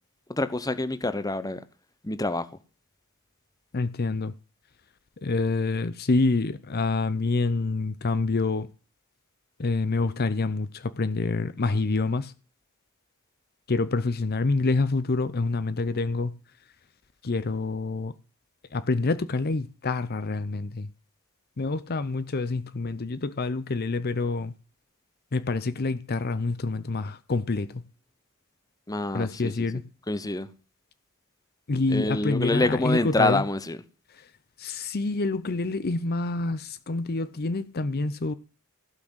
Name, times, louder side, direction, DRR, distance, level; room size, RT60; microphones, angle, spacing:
voice 1, 0.3-1.6 2.0-2.5 28.9-29.5 30.1-30.5 31.9-33.8, left 2 dB, 15° left, 0.9 m, -26 dB
voice 2, 3.7-4.3 5.2-8.7 9.6-12.3 13.7-16.3 17.2-18.1 18.7-20.9 21.6-24.5 25.3-27.8 29.1-29.8 31.7-33.4 34.2-34.3 34.6-38.3, left 3 dB, 45° left, 0.6 m, -27 dB
15.5 x 6.2 x 8.0 m
head